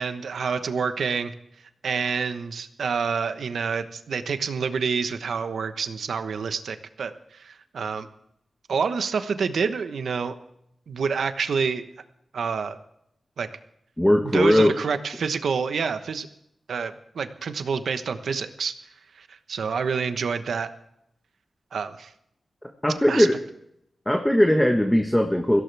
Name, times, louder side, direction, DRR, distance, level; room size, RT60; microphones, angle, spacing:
voice 1, 0.0-1.3 1.8-8.1 8.7-10.3 10.9-11.9 12.3-12.8 13.4-13.5 14.2-16.3 16.7-18.7 19.2-20.7 21.7-22.1 23.1-23.3, right 5 dB, 85° right, 9 dB, 1.1 m, -28 dB
voice 2, 14.0-14.7 22.8-23.4 24.1-25.6, equal, 5° left, 4 dB, 1.3 m, -19 dB
22.0 x 16.0 x 3.4 m, 0.77 s
wide cardioid pair, 110°, 0 cm